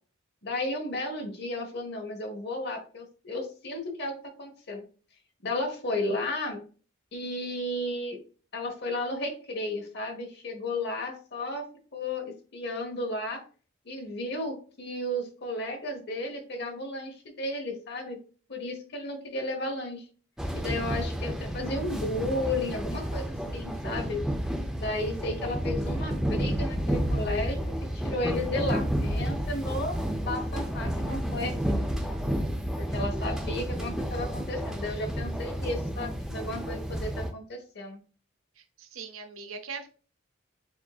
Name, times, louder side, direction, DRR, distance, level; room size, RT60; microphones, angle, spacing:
voice 1, 0.4-4.9 5.4-6.6 7.1-8.2 8.5-13.4 13.8-18.2 18.5-20.1 20.5-24.2 24.8-31.8 32.8-38.0, left 1 dB, 55° left, 1.0 m, -33 dB
sound 1, 20.4-37.3, equal, 5° right, 0.5 m, -31 dB
voice 2, 38.6-39.9, right 5 dB, 90° right, 0.6 m, -41 dB
7.0 x 2.6 x 2.3 m
head